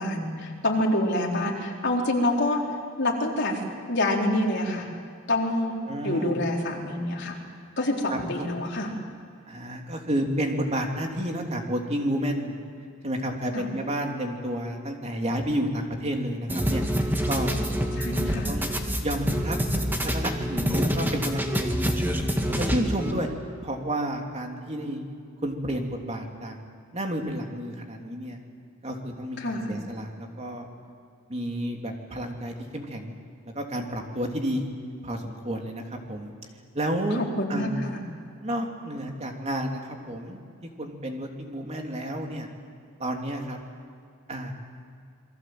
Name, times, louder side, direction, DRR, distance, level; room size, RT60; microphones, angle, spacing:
voice 1, 0.0-2.6 3.0-3.6 3.9-4.9 5.3-5.8 6.0-7.4 7.8-8.9 13.5-13.6 18.0-18.5 29.4-29.8 37.2-38.0, left 1 dB, 55° left, -1 dB, 4.2 m, -26 dB
voice 2, 5.8-6.4 8.1-8.5 9.5-12.6 13.0-16.8 17.3-18.7 19.0-19.6 20.0-23.3 23.6-25.1 25.4-26.6 26.9-28.4 28.8-30.7 31.3-33.2 33.5-34.6 35.0-36.3 36.7-37.2 37.5-38.0 38.4-42.5 43.0-43.6 44.3-44.5, right 1 dB, 35° right, 2 dB, 3.1 m, -31 dB
sound 1, 16.5-23.1, equal, 10° right, 2.1 m, -26 dB
28.5 x 22.5 x 7.8 m, 2.3 s
head